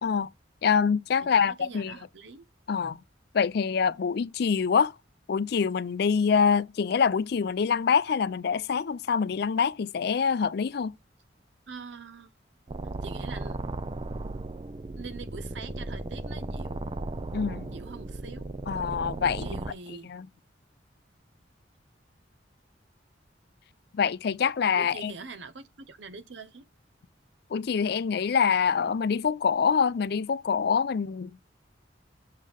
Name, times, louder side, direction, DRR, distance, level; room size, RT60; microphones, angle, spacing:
voice 1, 0.6-1.9 2.7-3.0 3.3-4.9 5.3-10.9 17.3-17.7 18.7-19.5 20.1-20.3 23.9-25.1 27.5-31.5, left 6 dB, 60° left, 0.4 m, -25 dB
voice 2, 1.2-2.5 11.7-12.3 13.0-13.6 15.0-16.8 17.7-18.5 19.4-20.1 24.8-26.7, right 4 dB, 75° right, 0.8 m, -44 dB
sound 1, 12.7-19.7, right 2 dB, 30° right, 0.5 m, -36 dB
6.5 x 3.7 x 5.1 m
head